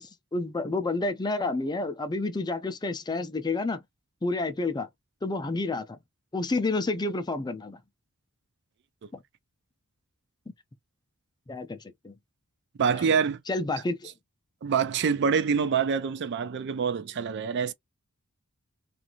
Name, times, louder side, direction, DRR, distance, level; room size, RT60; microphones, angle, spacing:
voice 1, 0.0-3.8 4.2-4.9 5.2-6.0 6.3-7.8 11.5-11.8 12.0-12.1 12.9-13.0 13.5-14.1, left 2 dB, 20° left, 0.4 m, -29 dB
voice 2, 12.8-13.4 14.6-17.7, right 6 dB, 55° right, 0.4 m, -26 dB
2.6 x 2.5 x 2.8 m
head